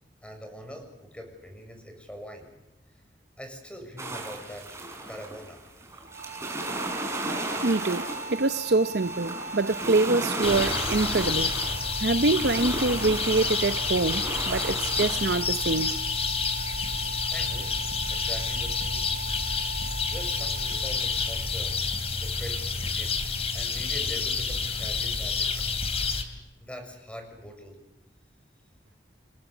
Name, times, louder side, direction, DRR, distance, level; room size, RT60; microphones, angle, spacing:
voice 1, 0.2-2.5 3.4-4.7 5.1-5.6 5.9-6.0 17.3-17.7 18.1-19.1 20.1-21.7 22.1-25.7 26.1-26.3 26.6-27.8, equal, 5° left, 6.9 m, -43 dB
sound 1, 4.0-16.0, right 2 dB, 15° right, 5.3 m, -35 dB
sound 2, 6.0-22.9, right 2 dB, 35° right, 2.8 m, -40 dB
voice 2, 7.6-11.5 12.0-15.9, right 3 dB, 65° right, 0.8 m, -25 dB
sound 3, 10.4-26.2, left 4 dB, 35° left, 3.2 m, -29 dB
29.5 x 21.5 x 7.2 m
head